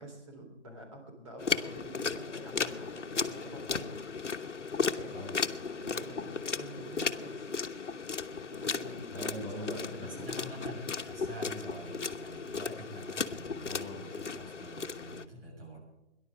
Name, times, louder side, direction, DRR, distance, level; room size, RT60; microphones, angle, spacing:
voice 1, 0.0-4.0 5.0-5.4 5.8-7.5 8.5-10.5, right 1 dB, 30° right, 1 dB, 3.5 m, -47 dB
sound 1, 1.4-15.3, left 5 dB, 85° left, 1.1 m, -35 dB
voice 2, 5.1-5.6 9.1-15.8, equal, 50° right, 0 dB, 6.7 m, -44 dB
19.0 x 11.0 x 6.1 m, 0.93 s
hypercardioid pair, 165°, 35 cm